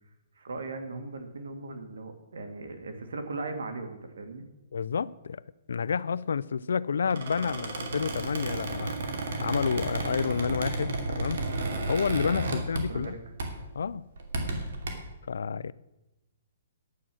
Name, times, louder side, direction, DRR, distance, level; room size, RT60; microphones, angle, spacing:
voice 1, 0.4-4.5 12.4-12.6 12.9-13.1, right 3 dB, 90° right, 2.2 m, -38 dB
voice 2, 4.7-5.4 5.7-9.0 9.4-11.4 11.9-13.2 13.8-14.1 15.3-15.7, left 6 dB, 85° left, 0.4 m, -29 dB
Squeak, 7.0-13.1 13.4-13.7 14.2-14.9, right 2 dB, 65° right, 2.8 m, -33 dB
11.5 x 8.7 x 6.2 m
hypercardioid pair, 160°, 0 cm